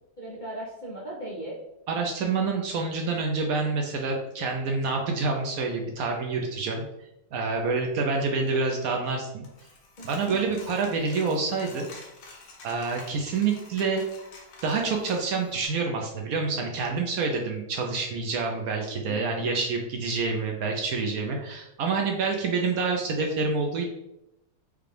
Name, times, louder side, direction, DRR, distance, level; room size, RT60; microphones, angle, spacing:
voice 1, 0.2-1.6 10.0-10.7 19.0-19.2, right 1 dB, 45° left, -6 dB, 0.6 m, -38 dB
voice 2, 1.9-6.8 7.3-9.5 10.1-11.9 12.6-14.0 14.6-23.8, right 4 dB, 70° right, 2 dB, 0.9 m, -27 dB
Coin (dropping), 9.4-15.7, left 3 dB, 85° left, 1.5 m, -49 dB
5.1 x 2.3 x 3.3 m, 0.87 s
omnidirectional pair, 1.8 m